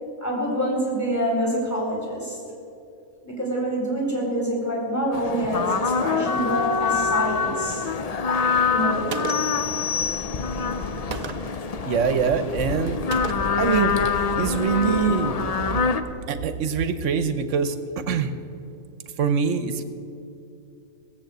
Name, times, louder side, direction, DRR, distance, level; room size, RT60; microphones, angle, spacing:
voice 1, 0.2-2.4 3.2-7.8 8.7-9.3, equal, 10° left, -4 dB, 4.4 m, -26 dB
sound 1, 5.1-16.0, left 5 dB, 45° left, 0.5 m, -25 dB
Gunshot gunfire, 9.1-9.7 11.1-11.6 13.1-13.7, right 5 dB, 45° right, 0.5 m, -34 dB
sound 2, 9.3-10.8, left 7 dB, 60° left, 1.3 m, -30 dB
voice 2, 11.8-13.0 13.6-15.4 16.3-18.3 19.2-19.8, right 6 dB, 65° right, 10 dB, 1.2 m, -24 dB
17.5 x 8.1 x 7.9 m, 2.7 s
omnidirectional pair, 1.4 m